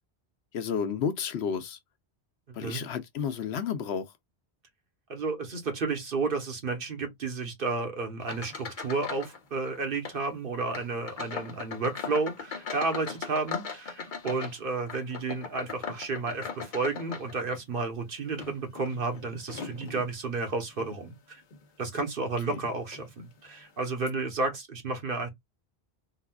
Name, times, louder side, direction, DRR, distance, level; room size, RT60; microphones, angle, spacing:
voice 1, 0.5-1.8 2.5-4.1 22.5-22.6, left 7 dB, 85° left, 1.0 m, -31 dB
voice 2, 5.1-21.4 21.8-25.3, right 3 dB, 60° right, 1.2 m, -32 dB
sound 1, 8.2-9.4 9.6-10.2 10.7-17.8 18.3-20.1 20.7-21.0 21.5-21.6 22.5-22.6 22.9-23.1, left 6 dB, 50° left, 0.9 m, -39 dB
3.8 x 2.4 x 2.3 m
omnidirectional pair, 1.1 m